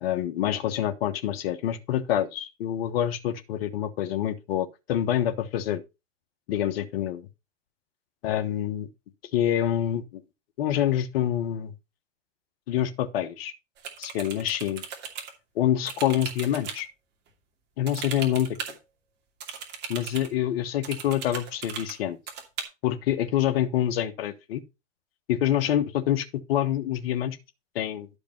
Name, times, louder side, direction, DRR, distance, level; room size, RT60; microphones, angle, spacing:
voice 1, 0.0-5.8 6.5-7.3 8.2-8.9 9.3-10.2 10.6-11.7 12.7-13.5 14.0-14.8 15.5-16.9 17.8-18.8 19.9-22.2 22.8-24.6 25.3-27.4 27.7-28.1, left 11 dB, 55° left, 1.3 m, -26 dB
sound 1, 13.8-15.3 15.8-16.8 17.9-18.8 19.4-20.3 20.8-21.9 22.3-22.6, right 7 dB, 25° right, 2.6 m, -37 dB
12.0 x 5.2 x 4.4 m
hypercardioid pair, 130°, 37 cm